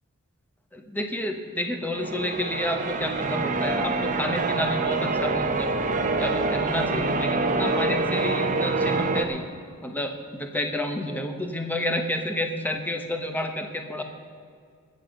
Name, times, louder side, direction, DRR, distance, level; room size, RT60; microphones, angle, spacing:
voice 1, 0.7-5.7 6.2-9.4 9.8-14.0, left 1 dB, 10° left, 4 dB, 0.9 m, -30 dB
Church bell, 1.9-9.2, right 3 dB, 35° right, 0.8 m, -26 dB
20.0 x 7.5 x 5.2 m, 2.2 s
head